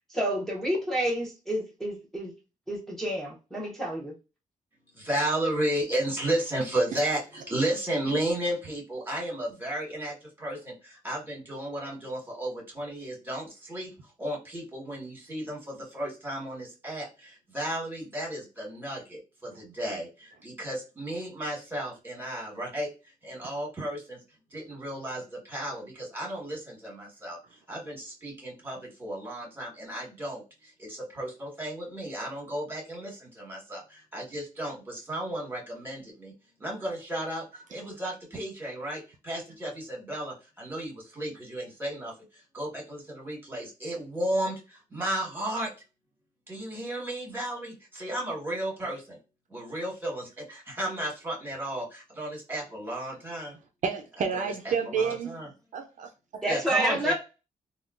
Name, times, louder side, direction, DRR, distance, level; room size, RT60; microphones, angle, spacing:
voice 1, 0.1-2.3 2.7-4.1 56.4-57.1, right 1 dB, 5° left, 0.7 m, -29 dB
voice 2, 5.0-24.2 24.5-36.3 36.6-37.4 37.7-45.7 46.5-49.2 49.5-53.6 54.3-55.5 56.5-57.1, right 1 dB, 15° right, 1.3 m, -34 dB
voice 3, 53.8-55.4 55.7-56.4, right 6 dB, 60° right, 0.4 m, -30 dB
3.6 x 2.2 x 2.4 m
wide cardioid pair, 145°, 14 cm